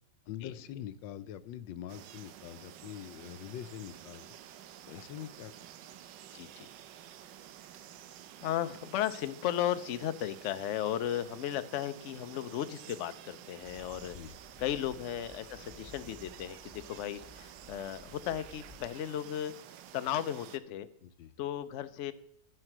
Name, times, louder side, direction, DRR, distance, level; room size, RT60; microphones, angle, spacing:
voice 1, 0.3-4.3 4.9-5.5 14.1-14.3 21.0-21.3, left 10 dB, 90° left, 14 dB, 1.4 m, -44 dB
sound 1, 1.9-20.6, right 11 dB, 85° right, 1.3 m, -51 dB
voice 2, 6.3-6.7 8.4-14.2 14.6-19.5 19.9-20.9 21.4-22.1, left 11 dB, 65° left, 11 dB, 0.7 m, -35 dB
sound 2, 13.6-18.9, left 4 dB, 5° left, 1.1 m, -56 dB
10.0 x 7.7 x 6.0 m, 0.68 s
omnidirectional pair, 2.0 m